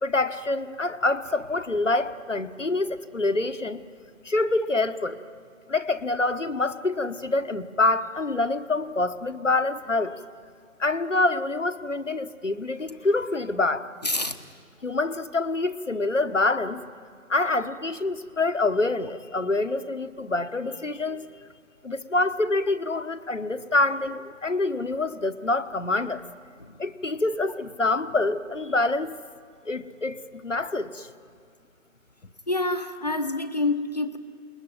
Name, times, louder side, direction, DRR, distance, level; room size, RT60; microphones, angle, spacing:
voice 1, 0.0-3.8 4.2-5.2 5.7-10.2 10.8-13.9 14.8-16.8 17.3-21.5 21.8-26.2 26.8-29.2 29.6-31.1, left 2 dB, 60° left, 11 dB, 1.3 m, -26 dB
voice 2, 14.0-14.4 32.5-34.2, left 2 dB, 30° left, 7 dB, 1.2 m, -27 dB
29.0 x 21.0 x 9.5 m, 2.1 s
figure-of-eight pair, 165°, 42 cm